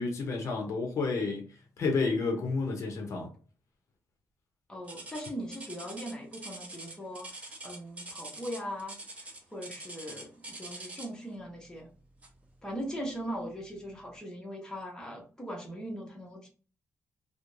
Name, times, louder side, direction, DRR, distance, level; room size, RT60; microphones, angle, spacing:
voice 1, 0.0-3.3, left 4 dB, 70° left, 0.6 m, -31 dB
voice 2, 4.7-11.9 12.6-16.5, equal, 10° left, 0.7 m, -40 dB
sound 1, 4.9-11.3 12.2-12.5 13.0-13.1 13.8-13.9, right 2 dB, 25° right, 0.6 m, -44 dB
2.4 x 2.0 x 3.0 m
wide cardioid pair, 135°, 5 cm